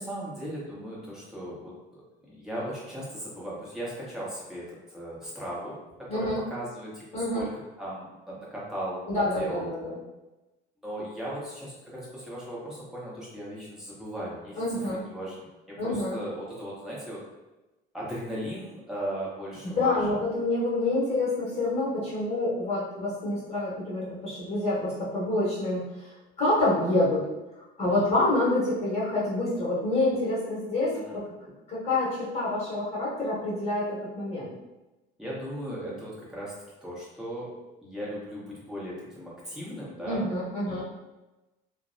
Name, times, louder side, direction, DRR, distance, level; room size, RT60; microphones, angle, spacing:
voice 1, 0.0-2.0 2.3-7.5 7.8-9.7 10.8-17.2 17.9-20.0 27.8-28.2 30.9-31.2 35.2-36.5 36.8-37.5 37.8-40.3 40.7-40.8, equal, ahead, -7 dB, 1.1 m, -37 dB
voice 2, 6.1-6.4 7.1-7.4 9.1-10.0 14.6-15.0 15.8-16.2 19.6-26.1 26.4-27.2 27.8-31.3 31.7-34.5 40.0-40.8, left 2 dB, 20° left, -7 dB, 1.4 m, -27 dB
2.5 x 2.2 x 2.7 m, 1.1 s
figure-of-eight pair, 55°, 30 cm